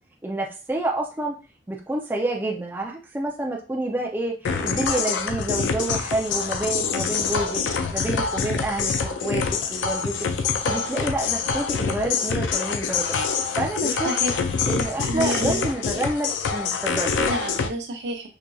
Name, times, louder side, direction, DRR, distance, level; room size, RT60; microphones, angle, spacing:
voice 1, 0.2-1.4 1.7-9.4 9.7-10.1 10.6-14.1 14.7-17.1, right 2 dB, 10° right, -1 dB, 0.4 m, -28 dB
sound 1, 4.5-17.7, left 5 dB, 85° left, 0.4 m, -25 dB
voice 2, 14.0-14.4 15.1-15.6 17.3-18.3, right 1 dB, 70° right, 4 dB, 0.6 m, -29 dB
4.9 x 2.6 x 2.3 m, 0.34 s
head